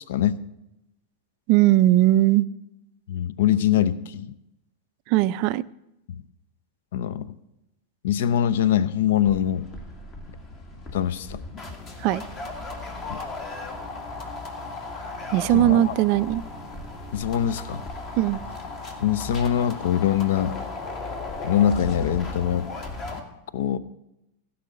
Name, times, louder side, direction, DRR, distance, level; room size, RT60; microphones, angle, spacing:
voice 1, 0.1-0.4 3.1-4.4 6.1-6.2 6.9-7.4 8.0-9.7 10.9-11.4 13.1-13.2 15.5-15.9 17.1-17.8 19.0-20.6 21.4-22.7 23.5-23.8, left 10 dB, 55° left, 17 dB, 0.6 m, -23 dB
voice 2, 1.5-2.5 5.1-5.6 12.0-12.2 15.3-16.4 18.2-18.4, right 15 dB, 45° right, 18 dB, 0.4 m, -19 dB
sound 1, 9.2-23.2, left 3 dB, 30° left, 1.8 m, -36 dB
16.5 x 5.5 x 7.7 m, 0.87 s
figure-of-eight pair, 90°, 0 cm